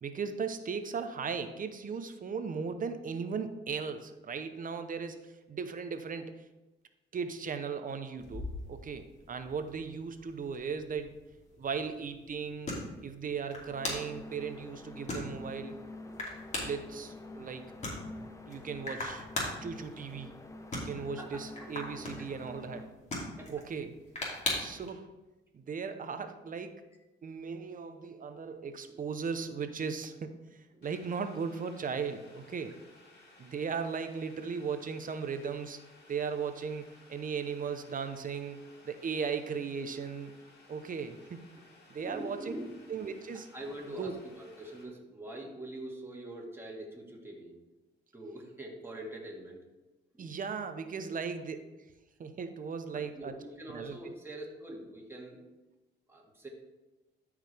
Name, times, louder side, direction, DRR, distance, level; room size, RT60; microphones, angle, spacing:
voice 1, 0.0-6.4 7.1-11.1 11.6-12.7 13.0-15.8 16.6-17.7 18.5-19.3 19.6-20.4 20.7-22.9 23.5-24.0 24.5-25.1 25.5-26.8 27.2-32.8 33.4-35.8 36.1-40.3 40.7-41.4 41.9-42.5 42.9-43.5 44.0-44.1 50.2-51.6 52.2-53.3 53.7-54.1, right 5 dB, 45° right, 9 dB, 0.7 m, -37 dB
sound 1, 8.2-24.9, left 1 dB, 35° left, 2.8 m, -41 dB
sound 2, 13.7-23.0, left 2 dB, 15° left, 0.8 m, -47 dB
voice 2, 21.0-21.7 22.2-22.3 23.4-23.5 28.9-29.0 30.7-30.8 42.0-42.7 43.3-47.5 48.1-49.6 50.1-50.3 51.0-51.1 52.9-55.4 56.1-56.5, right 1 dB, 10° right, -2 dB, 2.1 m, -44 dB
Boiling, 30.8-44.8, left 2 dB, 55° left, 2.2 m, -59 dB
13.0 x 4.9 x 3.4 m, 1.1 s
cardioid pair, 90°, 20 cm